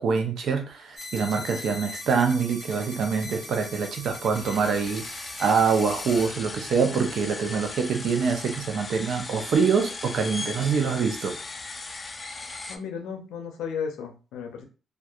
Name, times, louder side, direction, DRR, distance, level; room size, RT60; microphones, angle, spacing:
voice 1, 0.0-11.3, right 5 dB, 65° right, 5 dB, 0.5 m, -25 dB
sound 1, 1.0-6.3, left 1 dB, 10° left, 1.4 m, -40 dB
sound 2, 4.3-12.8, left 3 dB, 30° left, 0.3 m, -38 dB
voice 2, 12.7-14.6, left 6 dB, 90° left, 4 dB, 0.5 m, -34 dB
2.6 x 2.3 x 2.3 m, 0.34 s
cardioid pair, 90°, 0 cm